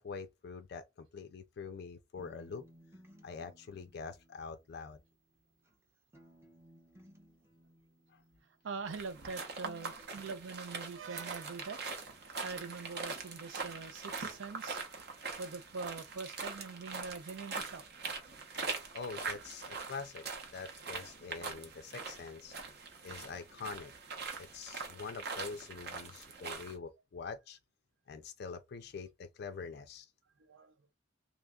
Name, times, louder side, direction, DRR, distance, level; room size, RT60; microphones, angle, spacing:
voice 1, 0.0-2.6 3.2-5.0 8.1-8.2 18.9-20.2 20.5-22.5 23.0-23.9 24.4-27.6 28.1-30.1, left 5 dB, 55° left, 0.4 m, -45 dB
sound 1, 2.2-5.8 6.1-8.9 9.2-10.2, equal, 15° right, 0.6 m, -61 dB
voice 2, 8.6-11.8 12.4-14.8 15.4-17.8 30.5-30.7, right 4 dB, 75° right, 0.5 m, -43 dB
sound 2, 8.9-26.7, right 4 dB, 55° right, 0.8 m, -43 dB
3.0 x 2.3 x 3.4 m
head